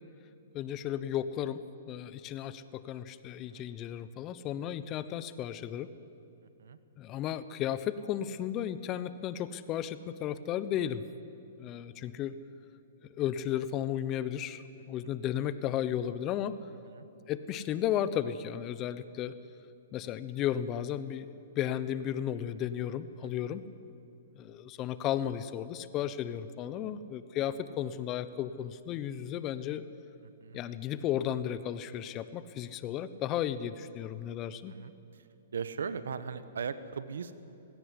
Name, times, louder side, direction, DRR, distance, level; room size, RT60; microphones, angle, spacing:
voice 1, 0.5-5.9 7.0-11.0 11.6-12.4 13.2-16.6 17.3-19.3 19.9-23.7 24.4-29.8 30.5-34.8, left 10 dB, 35° left, 14 dB, 1.0 m, -34 dB
voice 2, 23.2-23.6 26.7-27.0 30.2-30.6 34.7-35.3 35.5-37.3, right 6 dB, 80° right, 13 dB, 1.2 m, -39 dB
19.5 x 16.5 x 9.8 m, 2.7 s
hypercardioid pair, 125°, 0 cm